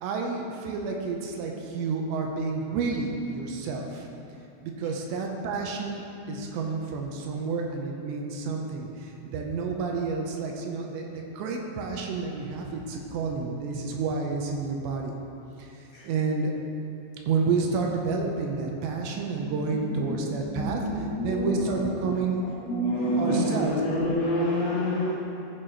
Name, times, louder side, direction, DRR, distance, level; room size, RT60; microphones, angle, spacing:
voice 1, 0.0-4.1 4.6-15.2 15.6-16.5 17.2-20.8 21.2-22.4 23.2-23.7, right 4 dB, 85° right, 1 dB, 2.9 m, -30 dB
voice 2, 19.4-22.2 22.7-25.1, equal, 70° left, -7 dB, 2.9 m, -28 dB
15.0 x 6.6 x 3.0 m, 2.9 s
omnidirectional pair, 5.2 m